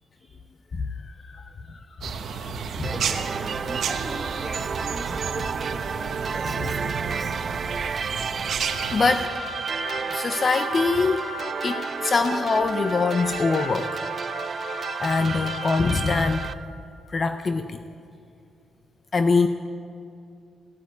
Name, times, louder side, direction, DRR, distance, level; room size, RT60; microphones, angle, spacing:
voice 1, 0.7-3.0 5.1-5.2 6.4-6.8 8.9-9.4 10.1-11.3 11.6-14.0 15.0-16.6 17.1-17.8 19.1-19.5, left 4 dB, 30° left, 9 dB, 0.5 m, -24 dB
voice 2, 1.7-2.0 2.9-7.4 8.8-9.0, right 2 dB, 10° right, 1 dB, 1.9 m, -40 dB
sound 1, 2.0-9.3, right 6 dB, 60° right, 1.0 m, -31 dB
sound 2, 2.8-16.5, right 5 dB, 35° right, 0.3 m, -31 dB
sound 3, 8.6-16.5, left 2 dB, 60° left, 2.9 m, -37 dB
16.5 x 9.0 x 9.5 m, 2.5 s
cardioid pair, 145°, 0 cm